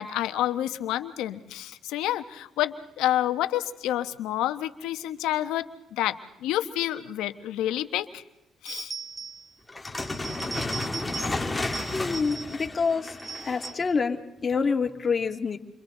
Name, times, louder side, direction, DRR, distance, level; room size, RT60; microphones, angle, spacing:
voice 1, 0.0-8.2 8.6-8.9, left 13 dB, 90° left, 9 dB, 1.1 m, -29 dB
sound 1, 8.7-9.5 10.0-11.4 11.7-12.7 13.0-13.9, right 4 dB, 25° right, 1.2 m, -38 dB
sound 2, 9.7-13.9, left 2 dB, 15° left, 1.8 m, -32 dB
voice 2, 11.9-13.1 13.4-15.6, left 5 dB, 40° left, 4 dB, 2.1 m, -27 dB
29.5 x 25.0 x 3.9 m, 0.86 s
cardioid pair, 85°, 0 cm